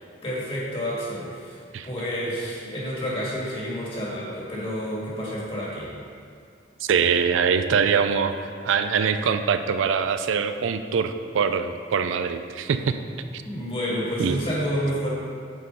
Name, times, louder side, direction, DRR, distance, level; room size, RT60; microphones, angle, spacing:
voice 1, 0.2-1.6 1.8-5.9 13.4-15.1, equal, 30° left, -6 dB, 1.8 m, -29 dB
voice 2, 6.9-13.0 13.3-13.4 14.2-14.4, right 6 dB, 85° right, 9 dB, 0.4 m, -23 dB
7.8 x 4.2 x 5.3 m, 2.2 s
head